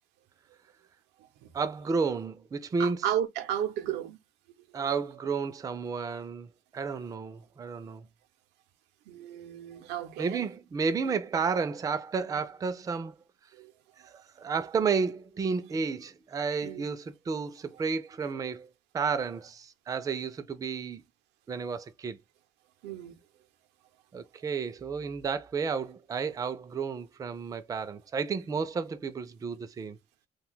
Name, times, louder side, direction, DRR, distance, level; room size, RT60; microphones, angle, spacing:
voice 1, 1.5-3.0 4.7-8.1 10.2-13.2 14.4-21.0 21.5-22.2 24.1-30.0, right 5 dB, 20° right, 0.3 m, -32 dB
voice 2, 2.8-4.2 9.1-10.4 13.5-13.7 14.0-14.1 16.6-16.8 22.8-23.2, right 10 dB, 85° right, 0.5 m, -33 dB
2.5 x 2.2 x 3.7 m
cardioid pair, 110°, 17 cm